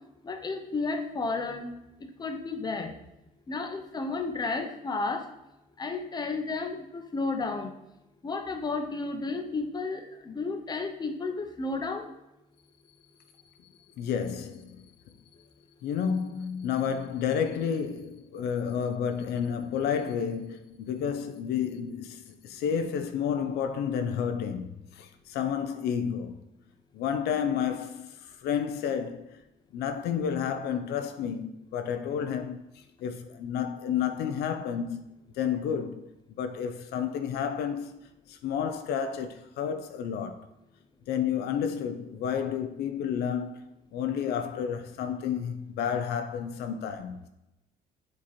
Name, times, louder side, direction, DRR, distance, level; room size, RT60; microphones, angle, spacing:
voice 1, 0.2-1.7 2.2-2.9 3.5-5.3 5.8-7.7 8.2-12.1, left 3 dB, 25° left, 0.7 m, -32 dB
voice 2, 14.0-14.9 15.8-26.4 26.9-29.4 29.7-35.0 35.4-36.1 36.4-37.9 38.3-40.5 41.1-43.6 43.9-47.2, left 7 dB, 75° left, 0.5 m, -31 dB
7.5 x 3.0 x 4.2 m
cardioid pair, 110°, 17 cm